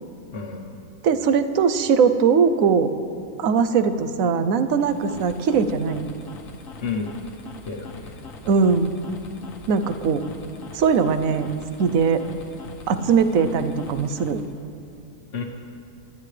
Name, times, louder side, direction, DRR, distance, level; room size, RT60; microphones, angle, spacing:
voice 1, 0.3-0.8 6.8-7.2 7.6-8.2 15.3-15.4, left 5 dB, 50° left, -1 dB, 1.3 m, -31 dB
voice 2, 1.0-2.9 3.4-6.1 8.4-8.9 9.7-10.2 10.7-11.5 11.8-12.2 12.9-14.4, right 6 dB, 75° right, 10 dB, 1.1 m, -20 dB
sound 1, 4.7-14.6, left 3 dB, 70° left, 1.4 m, -43 dB
23.5 x 13.0 x 3.3 m, 2.6 s
omnidirectional pair, 1.5 m